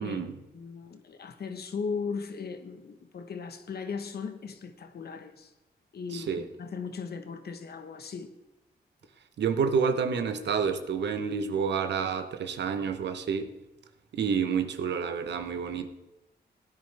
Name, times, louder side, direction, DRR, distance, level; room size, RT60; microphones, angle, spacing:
voice 1, 0.0-0.4 6.1-6.5 9.4-13.5 14.1-15.9, right 6 dB, 80° right, 0.9 m, -29 dB
voice 2, 0.5-5.5 5.9-8.3, left 5 dB, 65° left, 1.2 m, -37 dB
16.5 x 10.0 x 3.4 m
cardioid pair, 85°, 18 cm